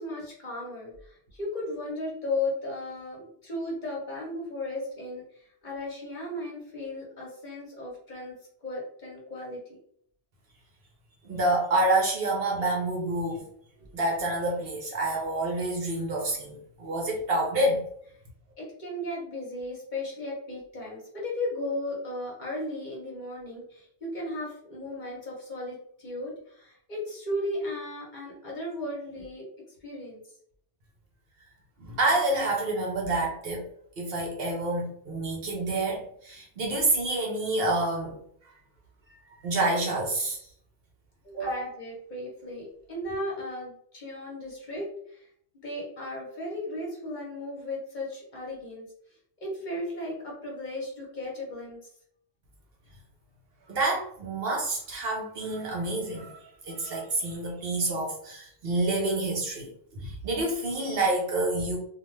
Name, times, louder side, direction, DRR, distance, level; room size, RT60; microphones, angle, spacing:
voice 1, 0.0-8.4 8.6-9.8 13.7-13.9 18.6-29.5 29.8-30.2 41.2-45.3 45.6-48.9 49.4-51.8, left 1 dB, 45° left, -4 dB, 0.9 m, -35 dB
voice 2, 11.2-13.5 13.9-17.8 31.8-33.6 34.0-38.2 39.4-40.4 41.4-41.6 53.7-61.8, right 2 dB, 60° right, -1 dB, 0.9 m, -28 dB
2.4 x 2.3 x 3.1 m, 0.65 s
omnidirectional pair, 1.2 m